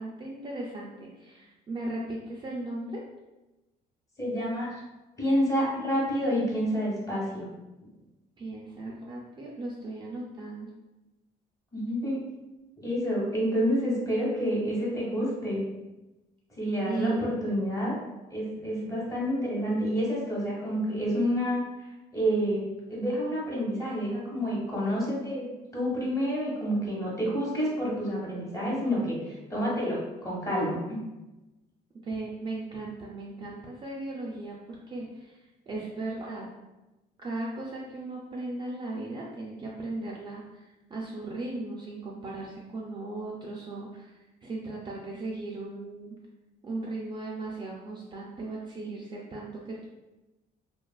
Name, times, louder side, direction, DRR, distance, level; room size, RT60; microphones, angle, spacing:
voice 1, 0.0-3.0 8.4-10.7 16.9-17.4 18.6-18.7 32.0-35.4 35.7-36.5 37.2-46.2 46.6-49.9, right 2 dB, 30° right, -3 dB, 0.4 m, -37 dB
voice 2, 4.2-4.7 5.2-7.5 11.7-12.2 12.8-15.6 16.6-17.9 18.3-31.0, equal, 20° left, -6 dB, 1.1 m, -29 dB
2.8 x 2.3 x 2.3 m, 1.0 s
cardioid pair, 110°, 17 cm